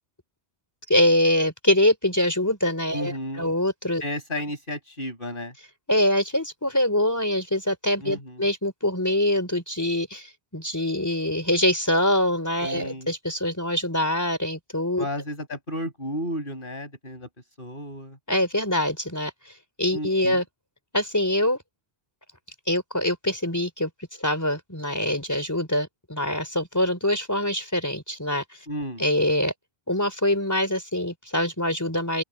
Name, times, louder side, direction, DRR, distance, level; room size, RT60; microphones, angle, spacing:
voice 1, 0.9-4.0 5.9-15.1 18.3-19.3 19.8-20.4 20.9-21.6 22.7-23.9 24.2-28.4 29.0-29.5 29.9-32.2, left 1 dB, 15° left, 4.0 m, -24 dB
voice 2, 2.9-3.5 4.0-5.5 8.0-8.4 12.6-13.1 15.0-17.3 17.6-18.2 19.9-20.4 28.7-29.0, left 1 dB, 50° left, 7.1 m, -33 dB
open air
omnidirectional pair, 1.1 m